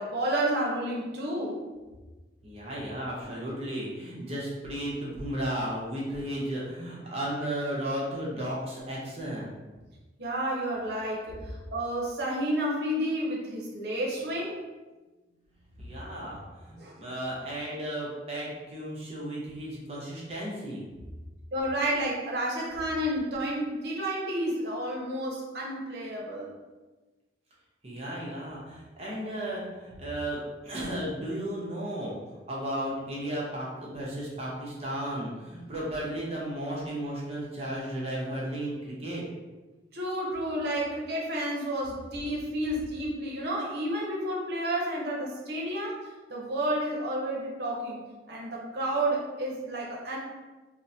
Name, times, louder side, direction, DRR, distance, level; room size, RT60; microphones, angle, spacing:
voice 1, 0.0-1.6 10.2-11.4 11.7-14.5 16.8-17.0 21.5-26.5 39.9-46.0 46.3-48.0 48.3-50.2, right 1 dB, 70° right, -3 dB, 0.7 m, -30 dB
voice 2, 2.4-9.5 15.8-20.9 27.8-39.2, right 1 dB, 35° right, -5 dB, 0.8 m, -34 dB
3.7 x 2.1 x 2.7 m, 1.2 s
head